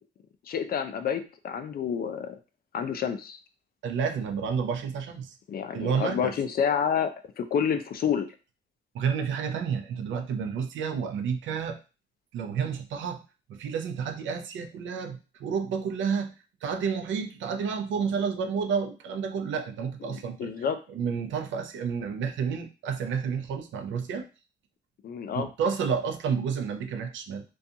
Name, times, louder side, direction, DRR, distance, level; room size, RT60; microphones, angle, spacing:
voice 1, 0.5-2.4 2.7-3.4 5.5-8.3 20.0-20.8 25.0-25.5, left 7 dB, 50° left, 9 dB, 0.4 m, -29 dB
voice 2, 3.8-5.3 5.7-6.3 8.9-11.8 12.3-13.2 13.5-16.3 16.6-20.5 20.9-24.2 25.3-27.4, right 6 dB, 75° right, 5 dB, 0.5 m, -30 dB
2.5 x 2.3 x 2.7 m, 0.32 s
cardioid pair, 90°, 20 cm